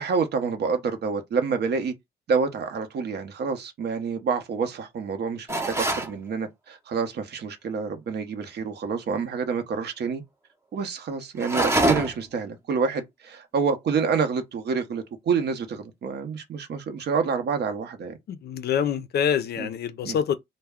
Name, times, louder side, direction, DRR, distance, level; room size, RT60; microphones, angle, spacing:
voice 1, 0.0-1.9 2.3-10.2 10.7-18.2 19.6-19.7 20.0-20.2, right 5 dB, 55° right, 0.7 m, -28 dB
Chimney - Open and close, 5.5-6.1 11.4-12.3, right 1 dB, 15° right, 0.6 m, -24 dB
voice 2, 18.3-20.4, left 8 dB, 55° left, 0.4 m, -26 dB
2.2 x 2.0 x 3.4 m
cardioid pair, 90°, 20 cm